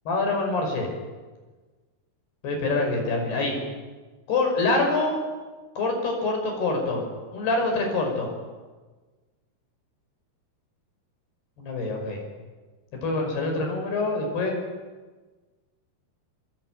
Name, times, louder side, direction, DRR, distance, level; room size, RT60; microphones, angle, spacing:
voice 1, 0.1-0.9 2.4-3.6 4.3-5.2 5.8-8.3 11.6-12.2 13.0-14.6, left 3 dB, 75° left, 2 dB, 7.6 m, -25 dB
26.0 x 24.0 x 9.3 m, 1.3 s
omnidirectional pair, 4.7 m